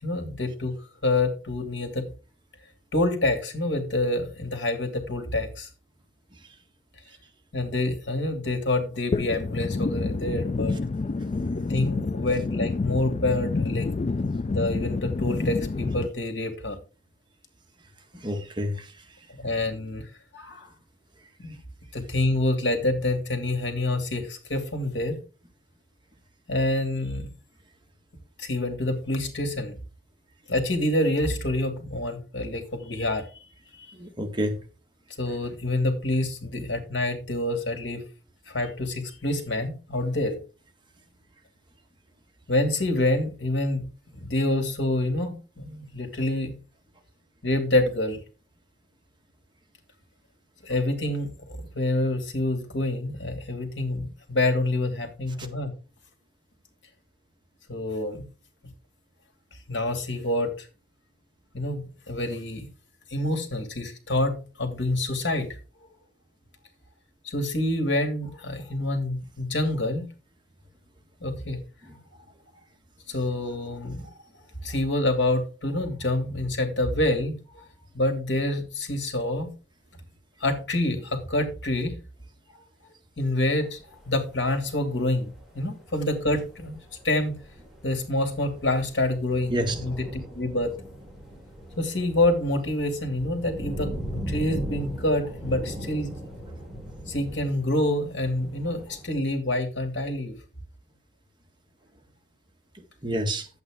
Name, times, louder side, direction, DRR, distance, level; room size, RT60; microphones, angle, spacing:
voice 1, 0.0-0.8 1.0-2.1 2.9-5.7 7.5-10.7 11.5-13.9 14.5-16.8 19.4-20.0 20.3-20.7 21.4-21.5 21.9-25.2 26.5-27.3 28.4-29.8 30.5-33.3 33.8-33.9 35.2-38.0 38.5-40.4 42.5-46.6 47.4-48.2 50.6-55.7 57.7-58.2 59.7-60.7 61.5-62.7 63.1-65.5 67.2-70.1 71.2-71.6 73.1-74.1 74.6-77.6 77.9-79.5 80.4-82.0 83.2-86.8 87.0-87.4 87.8-90.7 91.8-96.1 97.1-100.3, left 1 dB, 80° left, 2.6 m, -27 dB
sound 1, 9.1-16.1, left 3 dB, 35° left, 0.4 m, -28 dB
voice 2, 18.2-18.9 33.9-34.6 71.9-72.0 89.5-89.8 103.0-103.5, equal, 25° right, 1.8 m, -28 dB
sound 2, 83.6-84.6 85.1-85.2 85.4-99.1, equal, ahead, 3.1 m, -38 dB
11.0 x 8.5 x 3.7 m
head